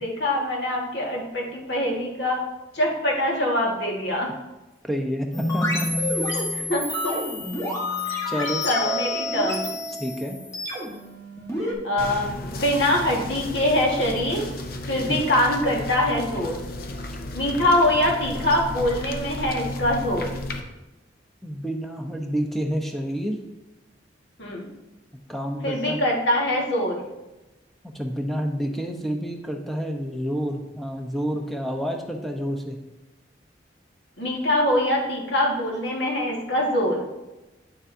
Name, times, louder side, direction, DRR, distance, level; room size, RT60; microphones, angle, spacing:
voice 1, 0.0-2.4 2.7-4.4 6.3-7.1 8.1-8.2 8.6-9.7 11.6-14.5 14.9-16.6 17.3-20.3 24.4-24.7 25.6-27.0 34.2-37.0, left 1 dB, 70° left, -1 dB, 1.6 m, -24 dB
voice 2, 4.8-6.0 8.3-8.6 10.0-10.4 15.1-15.2 21.4-23.4 25.3-26.0 27.9-32.8, equal, ahead, 2 dB, 0.7 m, -29 dB
sound 1, 5.3-11.7, left 1 dB, 15° left, 1.3 m, -28 dB
sound 2, 12.0-20.6, left 1 dB, 55° left, 0.7 m, -34 dB
8.9 x 6.9 x 2.7 m, 1.0 s
head